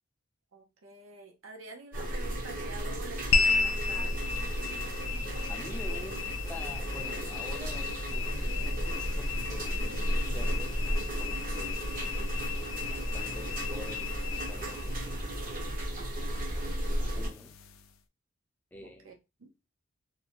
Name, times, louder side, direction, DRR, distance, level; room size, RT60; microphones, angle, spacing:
voice 1, 0.5-4.4 18.8-19.5, right 3 dB, 85° right, 0.6 m, -47 dB
sound 1, 1.9-17.3, equal, 45° right, 0.6 m, -34 dB
sound 2, 3.3-17.9, left 5 dB, 75° left, 0.3 m, -35 dB
voice 2, 5.5-10.8 11.2-12.4 12.9-15.1 15.4-15.8 16.8-17.5 18.7-19.2, left 1 dB, 10° left, 0.4 m, -48 dB
2.5 x 2.1 x 2.8 m
head